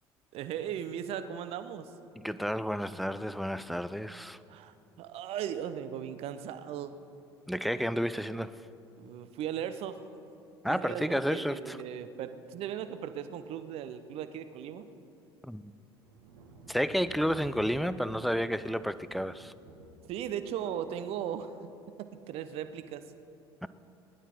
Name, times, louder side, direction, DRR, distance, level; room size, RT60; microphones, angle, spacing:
voice 1, 0.3-1.9 4.5-7.0 9.0-10.0 10.7-14.9 20.1-21.5 22.0-23.0, right 9 dB, 50° right, 11 dB, 0.8 m, -37 dB
voice 2, 2.2-4.4 7.5-8.6 10.6-11.8 15.4-15.7 16.7-19.5 23.6-23.7, equal, ahead, 14 dB, 0.5 m, -31 dB
sound 1, 15.9-21.4 22.5-22.9, right 2 dB, 70° right, 1.3 m, -54 dB
19.5 x 11.0 x 4.5 m, 2.7 s
figure-of-eight pair, 60°, 13 cm